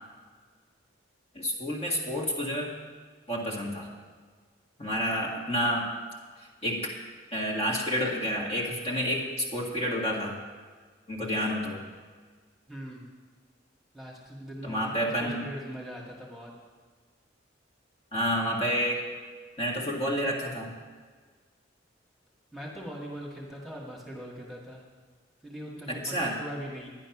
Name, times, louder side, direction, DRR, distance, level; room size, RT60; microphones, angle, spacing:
voice 1, 1.3-2.7 3.3-3.9 4.8-5.9 6.6-6.9 7.3-10.4 11.1-11.8 14.6-15.4 18.1-19.0 19.6-20.7 25.9-26.4, equal, 30° left, -2 dB, 1.9 m, -29 dB
voice 2, 12.7-13.1 13.9-16.5 22.5-24.8 25.4-26.9, equal, ahead, -3 dB, 1.8 m, -41 dB
12.0 x 10.5 x 6.0 m, 1.5 s
head